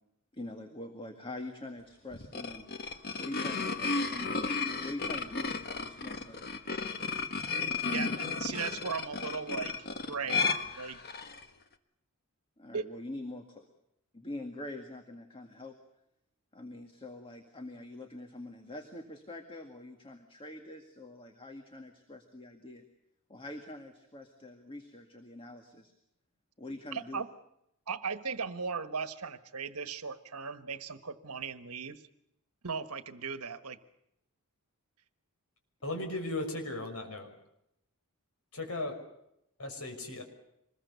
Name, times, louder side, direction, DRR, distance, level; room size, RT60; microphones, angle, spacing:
voice 1, 0.3-6.4 12.6-13.7 14.1-15.7 16.5-22.8 23.3-25.9 26.6-27.2, left 1 dB, 25° left, 2.0 m, -44 dB
sound 1, 2.1-11.4, left 4 dB, 45° left, 1.6 m, -34 dB
voice 2, 7.9-9.8 10.1-11.0 12.7-12.9 26.9-27.3 27.9-32.0 32.6-33.8, right 5 dB, 75° right, 1.4 m, -37 dB
voice 3, 35.8-37.3 38.5-39.0 39.6-40.2, left 2 dB, 70° left, 5.8 m, -36 dB
26.0 x 21.5 x 7.0 m
head